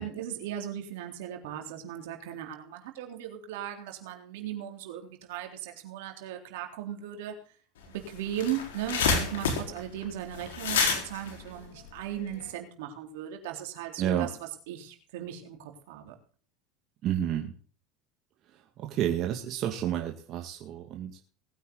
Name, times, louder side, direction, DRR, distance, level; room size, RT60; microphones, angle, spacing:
voice 1, 0.0-7.3 7.9-14.3 14.7-16.2, right 10 dB, 75° right, 3 dB, 3.6 m, -37 dB
sound 1, 7.8-7.9 8.2-12.4, left 5 dB, 85° left, 4.4 m, -29 dB
voice 2, 14.0-14.3 17.0-17.5 18.8-21.2, right 10 dB, 50° right, 3 dB, 2.1 m, -30 dB
20.0 x 9.4 x 4.0 m, 0.43 s
supercardioid pair, 100°, 0 cm